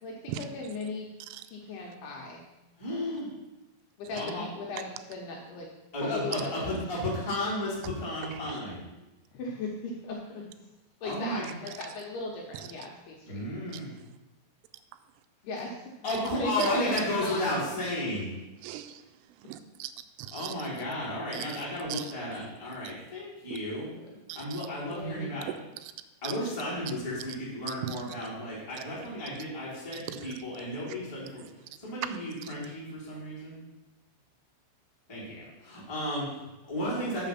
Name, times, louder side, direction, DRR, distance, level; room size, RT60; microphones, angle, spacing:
voice 1, 0.0-1.1 1.5-2.5 4.0-5.7 6.0-6.5 9.3-10.5 11.0-13.4 15.4-15.8 16.2-17.5 23.8-23.9 24.9-25.5, left 2 dB, 75° left, -2 dB, 2.5 m, -37 dB
voice 2, 1.2-1.9 4.2-4.3 6.3-6.4 7.3-7.4 8.2-8.6 11.4-11.9 12.5-12.7 13.7-13.9 16.6-16.7 18.6-20.7 21.3-21.6 21.9-22.1 22.8-22.9 24.3-24.7 25.8-25.9 26.2-26.4 27.7-28.2 28.8-28.9 29.3-29.4 29.9-30.4 30.8-31.0 32.0-32.6, right 12 dB, 90° right, 10 dB, 3.0 m, -41 dB
voice 3, 2.8-3.3 4.1-4.4 5.9-8.8 11.0-11.5 13.2-13.9 16.0-18.3 20.3-23.9 24.3-25.5 26.2-31.4 31.8-33.6 35.1-37.3, left 1 dB, 5° left, -8 dB, 2.4 m, -33 dB
7.1 x 6.8 x 5.7 m, 1.0 s
omnidirectional pair, 5.4 m